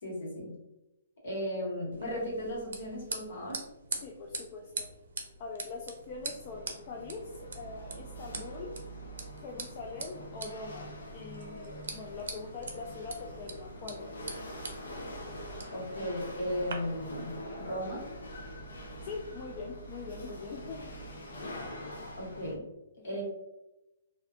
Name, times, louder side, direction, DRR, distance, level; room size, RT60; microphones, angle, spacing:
voice 1, 0.0-0.6 1.2-3.6 15.7-18.0 22.2-22.6 23.0-23.2, equal, 60° left, -4 dB, 1.4 m, -36 dB
sound 1, 1.9-16.7, right 4 dB, 70° right, 0.5 m, -44 dB
voice 2, 4.0-4.9 5.4-8.8 9.4-14.3 19.0-21.0 23.0-23.2, left 4 dB, 35° left, -1 dB, 0.3 m, -43 dB
Chatter / Hiss / Rattle, 5.7-22.6, equal, 80° left, 0.7 m, -44 dB
2.5 x 2.2 x 2.5 m, 0.94 s
hypercardioid pair, 145°, 0 cm